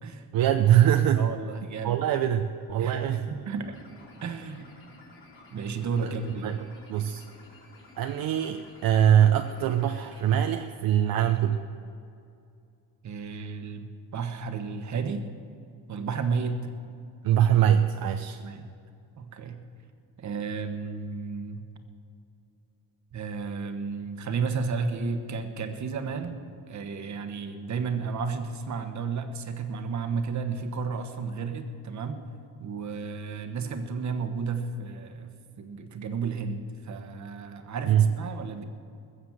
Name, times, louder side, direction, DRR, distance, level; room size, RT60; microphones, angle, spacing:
voice 1, 0.3-1.3 1.8-3.3 6.0-6.1 6.4-6.6 6.9-7.2 8.0-11.6 17.2-18.4 37.9-38.1, right 10 dB, 65° right, 6 dB, 0.7 m, -23 dB
voice 2, 1.1-2.0 2.8-3.7 4.2-4.7 5.5-6.5 13.0-15.3 15.9-16.6 18.4-18.7 19.2-19.6 20.2-21.6 23.1-26.4 26.7-32.2 32.6-35.3 35.6-38.6, right 5 dB, 50° right, 7 dB, 1.3 m, -32 dB
sound 1, 2.6-10.6, left 2 dB, 35° left, 4.0 m, -53 dB
21.0 x 7.3 x 7.4 m, 2.5 s
cardioid pair, 155°, 37 cm